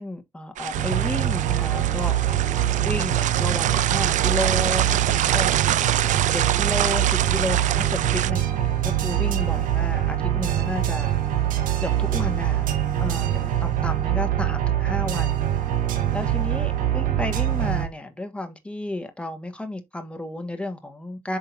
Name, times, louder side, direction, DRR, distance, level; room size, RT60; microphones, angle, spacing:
voice 1, 0.0-2.1 2.8-5.5 6.0-11.1 11.8-12.6 13.0-15.4 16.1-21.4, left 1 dB, 10° left, 1.6 m, -32 dB
sound 1, 0.6-8.3, right 12 dB, 65° right, 0.4 m, -26 dB
sound 2, 0.7-17.9, right 11 dB, 85° right, 1.5 m, -24 dB
11.0 x 3.8 x 2.9 m
cardioid pair, 95°, 14 cm